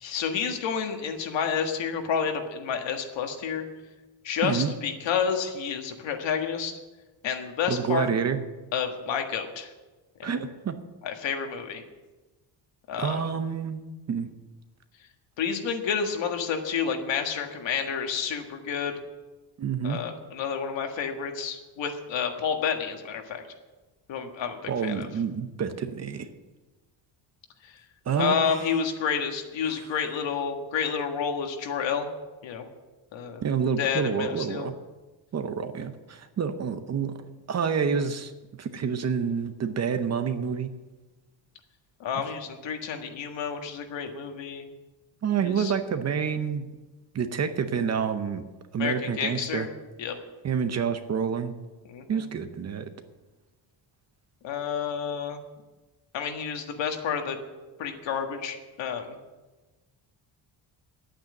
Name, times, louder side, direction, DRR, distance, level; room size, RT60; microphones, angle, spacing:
voice 1, 0.0-3.6 4.2-6.8 7.2-8.1 8.7-9.7 10.2-10.3 11.0-11.8 12.9-13.2 15.4-18.9 19.8-23.4 24.1-25.1 27.6-27.8 28.2-32.1 32.4-32.7 33.1-33.4 33.8-34.7 42.0-44.7 45.4-45.7 48.7-49.7 50.0-50.2 51.9-52.3 54.4-55.4 56.1-57.4 57.8-59.2, left 7 dB, 75° left, 4 dB, 1.7 m, -30 dB
voice 2, 7.7-8.4 10.2-10.7 13.0-13.8 14.1-14.3 19.6-20.0 24.7-26.3 28.1-28.6 29.7-29.8 33.4-34.7 35.3-37.2 37.5-38.3 38.6-40.7 45.2-46.7 47.1-48.4 48.7-49.7 50.4-51.5 52.1-52.9, right 6 dB, 35° right, 9 dB, 0.7 m, -28 dB
10.5 x 8.9 x 7.7 m, 1.2 s
cardioid pair, 175°, 45 cm